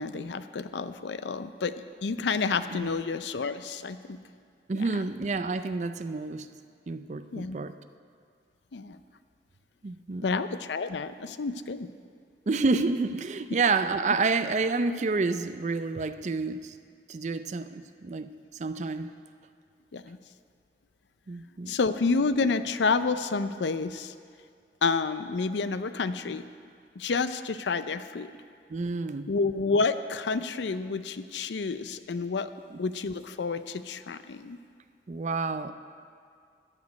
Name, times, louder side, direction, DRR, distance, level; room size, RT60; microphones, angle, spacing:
voice 1, 0.0-4.2 7.3-7.6 8.7-9.0 10.2-11.9 19.9-20.2 21.7-24.1 24.8-26.4 27.0-28.3 29.3-32.5 32.8-34.6, left 4 dB, 80° left, 12 dB, 0.5 m, -29 dB
voice 2, 4.7-6.5 6.9-7.8 9.8-10.3 12.5-16.7 17.1-18.3 18.6-19.1 21.3-21.7 28.7-29.3 32.7-32.8 35.1-35.7, right 3 dB, 40° right, 11 dB, 0.4 m, -29 dB
14.0 x 5.1 x 9.4 m, 2.2 s
head